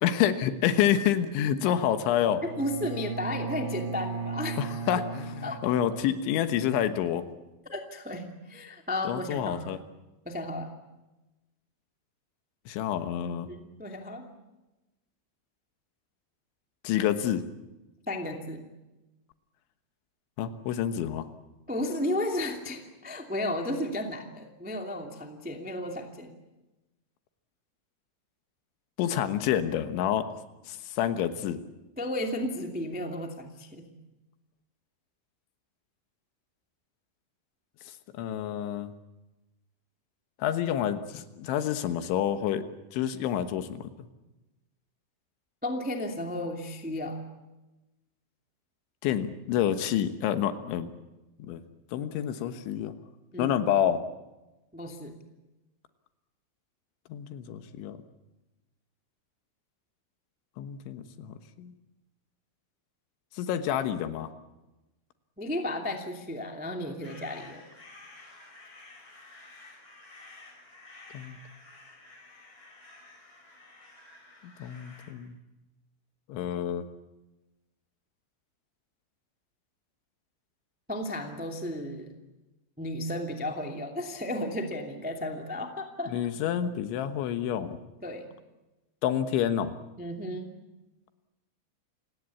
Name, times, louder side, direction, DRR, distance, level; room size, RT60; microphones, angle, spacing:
voice 1, 0.0-2.4 4.6-7.2 9.1-9.8 12.7-13.5 16.8-17.4 20.4-21.3 29.0-30.3 30.7-31.6 38.1-38.9 40.4-42.6 42.9-43.9 49.0-50.9 51.4-51.6 51.9-52.9 53.4-54.0 57.1-58.0 60.6-61.7 63.4-64.3 71.1-71.4 74.4-75.4 76.3-76.9 86.1-87.8 89.0-89.8, left 10 dB, 80° left, 9 dB, 3.6 m, -28 dB
voice 2, 2.4-4.6 5.4-5.6 7.7-9.6 10.2-10.7 13.5-14.3 18.1-18.6 21.7-26.3 32.0-33.9 45.6-47.2 53.3-53.6 54.7-55.2 65.4-67.6 80.9-82.1 82.8-86.1 88.0-88.3 90.0-90.5, left 1 dB, 15° right, 3 dB, 0.3 m, -33 dB
Bowed string instrument, 2.5-6.3, right 5 dB, 85° right, 5.1 m, -36 dB
sound 1, 67.0-75.1, left 2 dB, 25° left, 5.9 m, -52 dB
28.5 x 18.0 x 8.4 m, 1.0 s
omnidirectional pair, 5.4 m